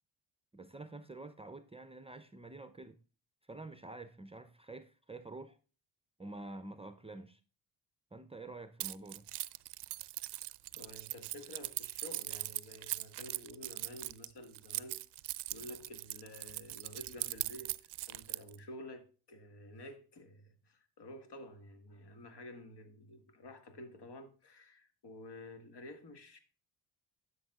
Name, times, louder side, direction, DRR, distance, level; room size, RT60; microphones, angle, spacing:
voice 1, 0.5-3.0 3.5-5.6 6.2-7.4 8.1-9.3, right 2 dB, 10° right, 0.7 m, -48 dB
Keys jangling, 8.8-18.6, right 18 dB, 55° right, 0.5 m, -40 dB
voice 2, 10.8-15.0 15.5-26.4, left 1 dB, 55° left, 2.1 m, -51 dB
12.5 x 6.6 x 2.5 m
hypercardioid pair, 55°, 50 cm